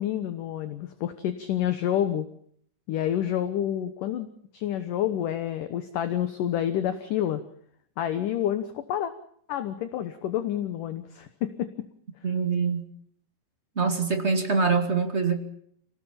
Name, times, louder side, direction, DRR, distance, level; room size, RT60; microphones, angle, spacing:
voice 1, 0.0-2.3 2.9-7.4 8.0-9.1 9.5-11.9, left 11 dB, 65° left, 11 dB, 2.2 m, -28 dB
voice 2, 12.2-12.8 13.7-15.4, right 5 dB, 25° right, 5 dB, 1.4 m, -24 dB
27.0 x 18.0 x 7.2 m, 0.65 s
omnidirectional pair, 4.9 m